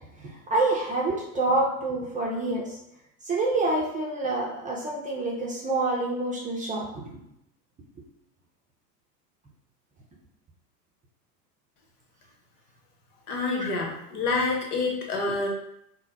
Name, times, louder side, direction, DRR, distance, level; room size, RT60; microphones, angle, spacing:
voice 1, 0.2-2.8 3.3-7.0 13.6-13.7, right 2 dB, 15° right, -2 dB, 0.6 m, -27 dB
voice 2, 13.3-15.5, left 3 dB, 65° left, 0 dB, 1.2 m, -27 dB
3.9 x 2.2 x 4.0 m, 0.79 s
hypercardioid pair, 90°, 49 cm